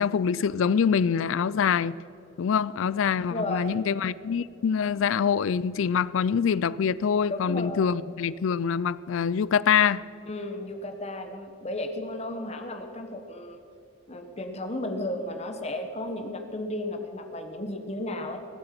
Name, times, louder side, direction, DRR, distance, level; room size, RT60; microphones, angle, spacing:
voice 1, 0.0-2.0 2.4-10.0, left 7 dB, 70° left, 0.4 m, -25 dB
voice 2, 3.3-3.7 7.3-7.9 10.3-13.6 14.1-18.4, left 1 dB, 30° left, 1.0 m, -34 dB
20.5 x 7.8 x 5.9 m
head